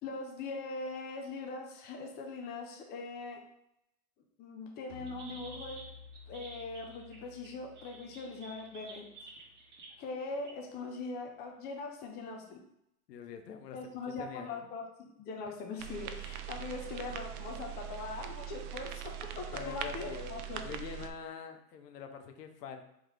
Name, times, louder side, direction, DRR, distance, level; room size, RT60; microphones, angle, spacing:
voice 1, 0.0-3.4 4.4-5.8 6.3-9.1 10.0-12.6 13.7-20.6, left 3 dB, 20° left, 2 dB, 0.5 m, -41 dB
sound 1, 4.9-10.3, left 4 dB, 40° left, 0.9 m, -54 dB
sound 2, 5.1-9.9 10.4-10.7 11.3-11.4, right 3 dB, 25° right, 1.1 m, -51 dB
voice 2, 13.1-14.7 19.5-22.8, left 7 dB, 80° left, 7 dB, 0.7 m, -45 dB
sound 3, 15.8-21.1, right 11 dB, 70° right, 0.6 m, -42 dB
3.9 x 3.0 x 3.2 m, 0.79 s
hypercardioid pair, 120°, 47 cm